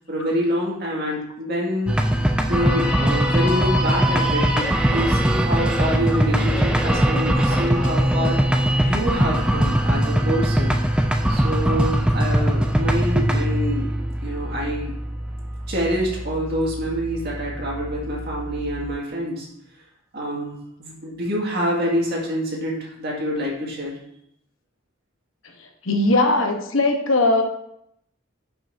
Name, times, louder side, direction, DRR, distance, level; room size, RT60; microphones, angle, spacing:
voice 1, 0.1-2.0 2.5-8.6 8.8-10.8 11.3-13.9 14.2-14.9 15.7-19.5 20.1-23.9, equal, 50° right, -3 dB, 2.2 m, -26 dB
sound 1, 1.9-19.0, equal, 5° right, 0.4 m, -21 dB
voice 2, 25.8-27.4, left 2 dB, 70° left, 4 dB, 1.1 m, -19 dB
11.0 x 5.7 x 2.7 m, 0.75 s
head